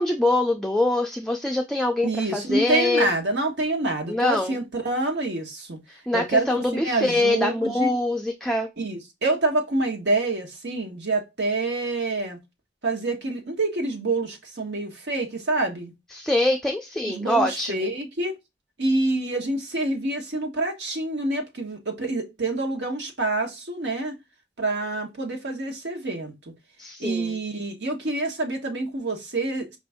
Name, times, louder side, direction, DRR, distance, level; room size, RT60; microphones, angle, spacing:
voice 1, 0.0-3.1 4.1-4.5 5.9-8.7 16.1-17.9 26.8-27.4, left 1 dB, ahead, 0.4 m, -24 dB
voice 2, 2.0-5.8 6.1-6.5 6.7-7.9 8.8-12.4 12.8-15.9 17.1-18.3 18.8-24.2 24.6-26.3 27.0-29.8, right 2 dB, 90° right, 1.2 m, -27 dB
5.0 x 2.6 x 3.4 m
head